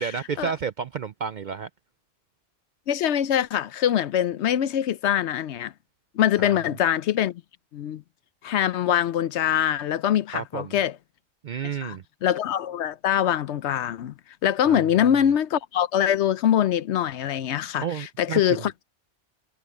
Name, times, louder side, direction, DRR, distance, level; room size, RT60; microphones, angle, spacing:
voice 1, 0.0-1.7 6.4-6.6 10.3-10.8 11.4-12.0 14.7-14.8 17.8-18.7, right 7 dB, 60° right, 0.5 m, -31 dB
voice 2, 2.9-5.7 6.1-7.4 7.7-8.0 8.4-10.9 11.8-12.0 12.2-14.1 14.4-18.7, left 10 dB, 70° left, 0.9 m, -23 dB
omnidirectional pair, 1.2 m